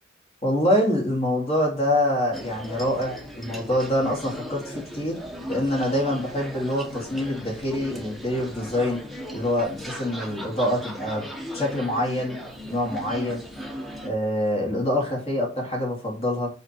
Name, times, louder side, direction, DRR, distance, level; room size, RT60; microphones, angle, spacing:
voice 1, 0.4-5.2 5.5-9.0 9.3-11.2 11.5-12.4 12.7-13.4 14.0-16.5, left 1 dB, 35° left, 0 dB, 2.7 m, -25 dB
sound 1, 2.3-14.1, equal, ahead, 1.2 m, -38 dB
6.0 x 5.7 x 4.5 m, 0.35 s
head